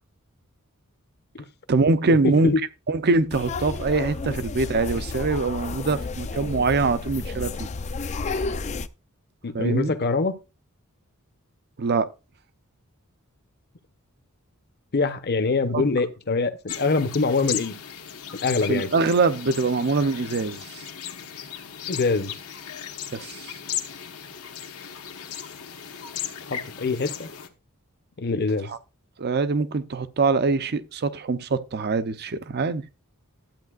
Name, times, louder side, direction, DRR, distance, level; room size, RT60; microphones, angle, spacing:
voice 1, 1.7-2.5 2.9-7.7 9.5-9.9 11.8-12.1 15.7-15.8 18.7-20.8 23.1-23.5 28.7-28.8 29.2-32.8, right 3 dB, 45° right, 0.6 m, -23 dB
sound 1, 3.3-8.9, left 3 dB, 30° left, 0.4 m, -31 dB
voice 2, 9.4-10.3 14.9-17.7 18.4-18.9 21.9-22.3 26.5-27.3 28.2-28.7, left 3 dB, 50° left, 0.8 m, -24 dB
sound 2, 16.7-27.5, left 9 dB, 80° left, 1.2 m, -36 dB
12.0 x 8.5 x 2.4 m
head